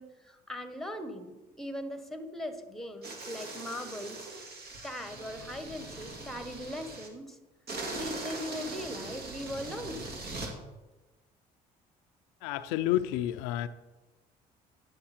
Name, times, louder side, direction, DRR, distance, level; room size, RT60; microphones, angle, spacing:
voice 1, 0.0-4.3 4.8-7.4 7.9-10.1, equal, ahead, 8 dB, 1.3 m, -40 dB
sound 1, 3.0-7.1 7.7-10.5, right 2 dB, 55° right, 2.2 m, -41 dB
voice 2, 12.4-13.7, left 13 dB, 85° left, 11 dB, 0.4 m, -30 dB
9.7 x 6.6 x 4.3 m, 1.1 s
supercardioid pair, 65°, 20 cm